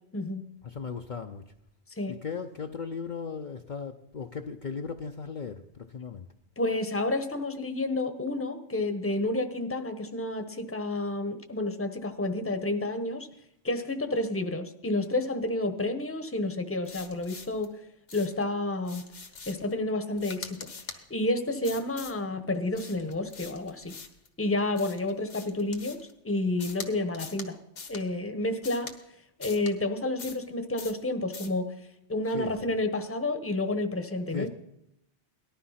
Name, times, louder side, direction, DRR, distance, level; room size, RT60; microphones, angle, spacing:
voice 1, 0.1-0.4 2.0-2.2 6.6-13.3 13.6-17.8 18.1-19.1 19.5-20.7 21.1-24.0 24.4-26.0 26.2-27.6 27.9-28.9 29.4-31.7 32.1-34.5, left 2 dB, 10° left, 8 dB, 1.0 m, -30 dB
voice 2, 0.6-1.5 2.1-6.3 32.3-32.7 34.3-34.5, left 5 dB, 45° left, 4 dB, 0.8 m, -37 dB
sound 1, 16.8-17.7 18.1-18.4 18.8-19.7 20.2-21.0 21.6-22.2 22.7-24.3 24.8-26.1 26.6-26.9 27.1-27.5 27.8-28.0 28.6-29.0 29.4-29.7 30.2-30.5 30.8-31.0 31.3-31.6, left 4 dB, 75° left, 1.7 m, -43 dB
18.5 x 12.5 x 5.7 m, 0.81 s
omnidirectional pair, 1.2 m